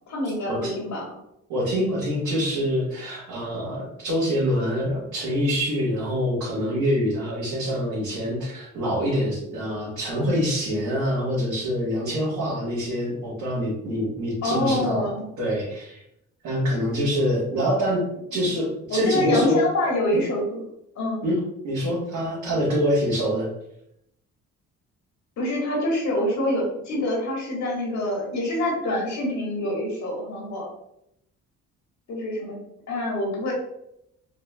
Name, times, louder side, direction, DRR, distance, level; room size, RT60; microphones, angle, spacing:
voice 1, 0.1-1.2 14.4-15.3 18.3-18.5 18.9-20.6 20.9-21.2 25.4-30.7 32.1-32.6 32.9-33.5, left 1 dB, 70° left, -2 dB, 1.4 m, -26 dB
voice 2, 1.5-15.1 15.4-16.0 16.4-18.0 18.3-19.6 20.1-20.2 21.2-21.4 21.6-23.5, equal, 80° right, -8 dB, 1.5 m, -25 dB
4.4 x 2.5 x 2.2 m, 0.78 s
cardioid pair, 90°, 30 cm